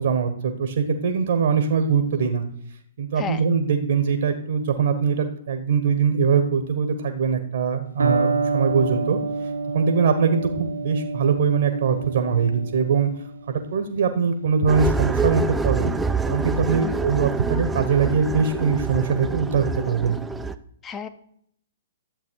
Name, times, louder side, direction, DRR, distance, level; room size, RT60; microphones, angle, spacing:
voice 1, 0.0-2.4 3.0-13.1 13.5-15.9 16.3-20.2, right 6 dB, 60° right, 7 dB, 1.2 m, -22 dB
voice 2, 3.2-3.4 16.7-17.0 20.8-21.1, left 6 dB, 20° left, 11 dB, 0.9 m, -33 dB
Electric guitar, 8.0-15.8, right 3 dB, 80° right, 1.2 m, -29 dB
sound 1, 14.7-20.5, right 3 dB, 5° right, 0.5 m, -26 dB
11.5 x 7.8 x 4.6 m, 0.68 s
figure-of-eight pair, 120°, 0 cm